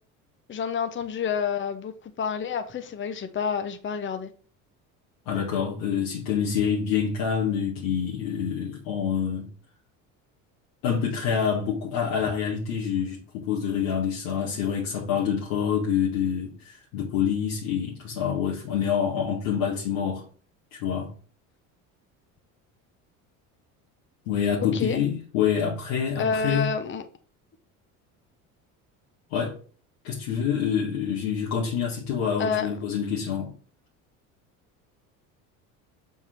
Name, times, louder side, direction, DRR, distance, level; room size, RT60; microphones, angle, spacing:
voice 1, 0.5-4.3 24.7-25.0 26.2-27.0 32.4-32.7, left 6 dB, 30° left, 0.9 m, -29 dB
voice 2, 5.3-9.5 10.8-20.2 20.7-21.1 24.3-26.7 29.3-29.6 30.0-33.5, left 7 dB, 75° left, 1.9 m, -27 dB
7.3 x 3.6 x 4.5 m
hypercardioid pair, 75°, 42 cm